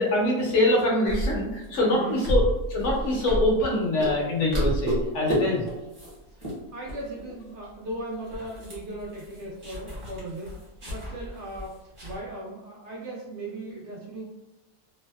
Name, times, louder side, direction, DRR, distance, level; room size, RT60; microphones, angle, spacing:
voice 1, 0.0-2.4 2.7-5.6, left 1 dB, 65° left, -3 dB, 0.9 m, -24 dB
sound 1, 1.1-3.8 4.0-4.2 4.5-5.4 5.7-6.1 6.4-6.5 6.9-7.4 7.7-7.8 8.1-12.2, right 1 dB, 30° right, 0.7 m, -31 dB
voice 2, 1.8-2.2 5.4-5.7 6.3-10.6 10.9-11.7 12.0-14.2, right 1 dB, 65° right, -3 dB, 0.8 m, -37 dB
2.6 x 2.1 x 2.2 m, 1.0 s
omnidirectional pair, 1.5 m